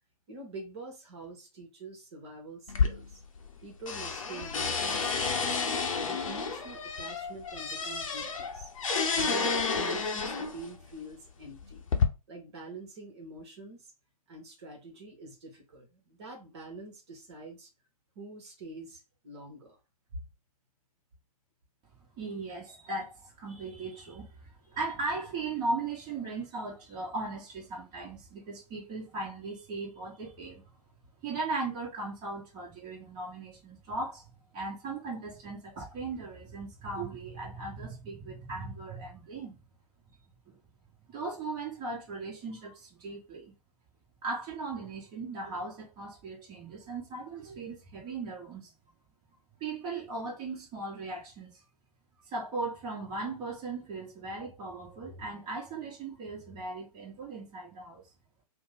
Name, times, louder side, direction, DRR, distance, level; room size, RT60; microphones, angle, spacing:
voice 1, 0.3-3.2 3.6-5.6 6.0-8.7 9.1-11.8 12.3-13.9 14.3-17.7 18.1-19.8, right 2 dB, 45° right, 1.1 m, -46 dB
sound 1, 2.7-3.6 3.9-10.7 11.4-12.0, left 5 dB, 55° left, 0.7 m, -30 dB
voice 2, 22.2-30.6 31.2-39.6 40.5-40.6 41.1-43.5 44.2-48.7 49.6-51.6 52.3-58.0, right 3 dB, 20° right, 1.2 m, -38 dB
2.9 x 2.2 x 3.8 m
figure-of-eight pair, 120°, 20 cm